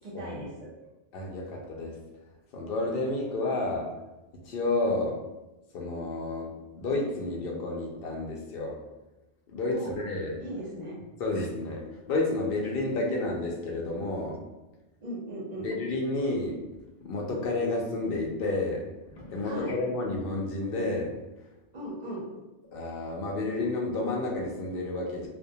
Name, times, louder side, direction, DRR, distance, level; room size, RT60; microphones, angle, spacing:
voice 1, 0.0-0.7 9.7-10.0 10.4-11.0 15.0-15.7 19.4-19.8 21.7-22.3, right 1 dB, 45° right, -5 dB, 0.7 m, -37 dB
voice 2, 1.1-2.0 2.5-3.9 4.5-5.2 5.7-8.8 9.5-10.3 11.2-11.8 12.1-14.4 15.6-16.6 17.0-18.8 19.2-21.1 22.7-25.3, left 2 dB, 65° left, -1 dB, 0.7 m, -30 dB
2.1 x 2.1 x 2.7 m, 1.0 s
omnidirectional pair, 1.2 m